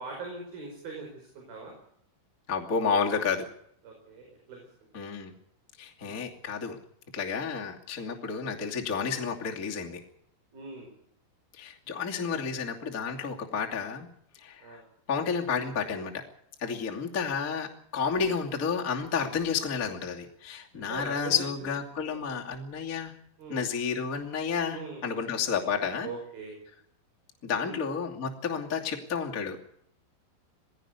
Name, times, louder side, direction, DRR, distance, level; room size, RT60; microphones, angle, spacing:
voice 1, 0.0-1.7 3.8-4.7 10.5-10.9 12.3-12.6 14.6-14.9 16.9-17.0 20.7-21.7 22.0-22.3 23.4-23.7 24.7-25.0 26.0-26.6 27.6-27.8, right 4 dB, 45° right, 1 dB, 6.9 m, -41 dB
voice 2, 2.5-3.5 4.9-5.3 5.8-6.8 7.1-10.0 11.5-14.1 14.4-14.8 15.1-16.2 16.6-23.1 23.5-26.1 27.4-29.6, left 6 dB, 30° left, 0 dB, 1.6 m, -31 dB
20.0 x 16.5 x 8.3 m, 0.68 s
omnidirectional pair, 5.9 m